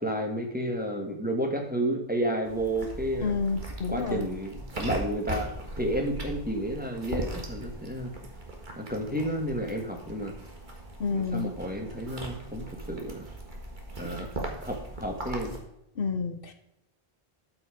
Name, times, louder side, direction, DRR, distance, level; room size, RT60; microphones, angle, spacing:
voice 1, 0.0-3.3 3.9-5.5 5.8-8.1 8.7-10.3 11.1-13.3 14.0-14.3 14.6-15.6, right 1 dB, 10° right, 1 dB, 1.6 m, -31 dB
sound 1, 2.4-15.6, right 2 dB, 50° right, 1.9 m, -39 dB
voice 2, 3.2-4.2 11.0-11.5 16.0-16.5, left 5 dB, 65° left, 7 dB, 1.0 m, -29 dB
12.5 x 5.9 x 5.0 m, 0.85 s
omnidirectional pair, 1.0 m